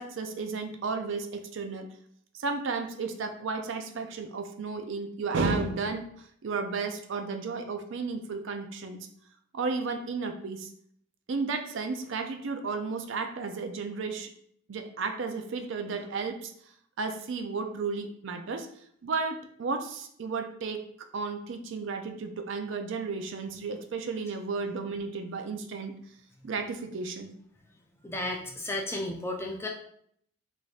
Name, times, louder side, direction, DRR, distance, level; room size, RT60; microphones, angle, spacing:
voice 1, 0.0-1.9 2.4-9.0 9.5-10.7 11.3-14.3 14.7-16.5 17.0-18.7 19.0-20.8 21.1-26.0 26.4-27.3, right 4 dB, 60° right, 6 dB, 0.4 m, -33 dB
voice 2, 28.0-29.7, left 1 dB, 10° left, 0 dB, 0.4 m, -33 dB
5.0 x 2.6 x 2.4 m, 0.66 s
head